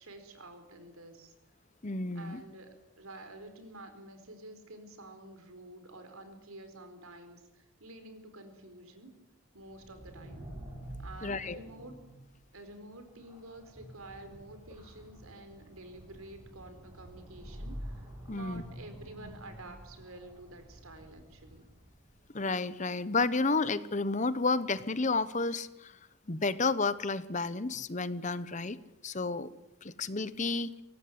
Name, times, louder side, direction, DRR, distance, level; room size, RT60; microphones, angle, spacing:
voice 1, 0.0-1.3 2.1-9.2 9.5-10.5 11.0-12.0 12.5-21.7, right 2 dB, 85° right, 8 dB, 4.5 m, -49 dB
voice 2, 1.8-2.4 11.2-11.6 18.3-18.6 22.3-26.0 26.3-28.8 29.0-29.5 29.8-30.7, left 3 dB, 35° left, 15 dB, 0.9 m, -31 dB
sound 1, 9.6-22.2, right 1 dB, 20° right, 7.9 m, -48 dB
22.0 x 18.0 x 9.5 m, 0.95 s
head